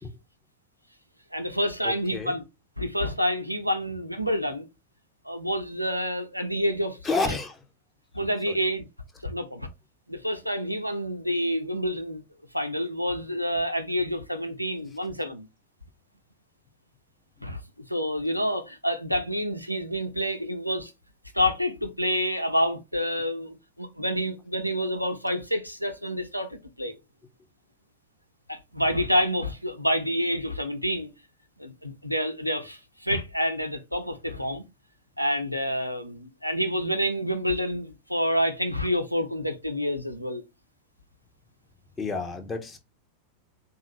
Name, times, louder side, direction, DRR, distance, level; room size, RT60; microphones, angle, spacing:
voice 1, 1.3-2.4 2.8-4.7 5.3-7.0 7.2-7.3 8.1-8.8 9.2-9.7 10.1-12.2 12.5-15.5 17.4-17.6 17.9-20.9 21.3-26.9 28.5-31.1 31.6-34.6 35.2-40.4, equal, 90° right, 0.5 m, -28 dB
voice 2, 1.8-2.3 7.0-7.6 8.5-8.6 42.0-42.8, left 3 dB, 15° left, 0.8 m, -30 dB
3.7 x 2.4 x 3.0 m
figure-of-eight pair, 90°, 0 cm